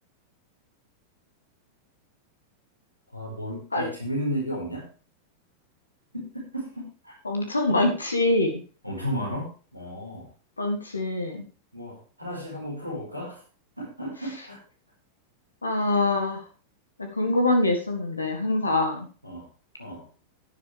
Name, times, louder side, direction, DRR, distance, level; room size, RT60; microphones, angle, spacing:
voice 1, 3.1-4.9 6.1-7.2 8.8-10.3 11.7-13.4 13.8-14.6 19.2-19.5 19.8-20.1, equal, 85° right, -2 dB, 4.8 m, -34 dB
voice 2, 7.3-8.6 10.6-11.4 15.6-16.4 17.0-19.1, left 2 dB, 80° left, 4 dB, 1.7 m, -24 dB
11.5 x 10.0 x 3.4 m, 0.36 s
figure-of-eight pair, 90°, 0 cm